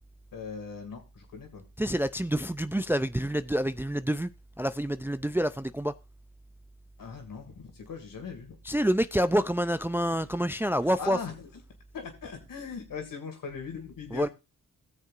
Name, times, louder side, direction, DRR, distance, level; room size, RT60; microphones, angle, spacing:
voice 1, 0.3-1.6 7.0-8.6 10.8-11.5 11.9-14.3, left 5 dB, 70° left, 2.4 m, -40 dB
voice 2, 1.8-4.3 4.6-5.9 8.7-11.2 14.1-14.3, equal, 5° right, 0.4 m, -27 dB
17.5 x 6.6 x 2.5 m
supercardioid pair, 50°, 34 cm